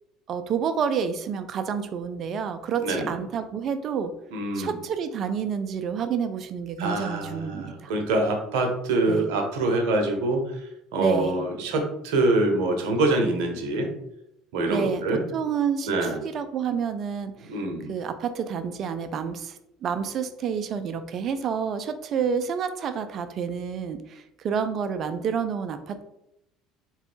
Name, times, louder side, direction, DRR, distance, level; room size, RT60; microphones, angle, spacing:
voice 1, 0.3-4.1 4.5-7.9 9.1-9.3 11.0-11.4 14.7-15.0 15.3-17.6 17.9-26.0, right 7 dB, 50° right, 9 dB, 0.4 m, -29 dB
voice 2, 2.8-3.1 4.3-4.8 6.8-10.6 10.9-13.9 14.5-15.2 15.9-16.2 17.5-17.9, right 2 dB, 70° right, 3 dB, 0.8 m, -25 dB
3.6 x 3.0 x 3.2 m, 0.82 s
hypercardioid pair, 65°, 0 cm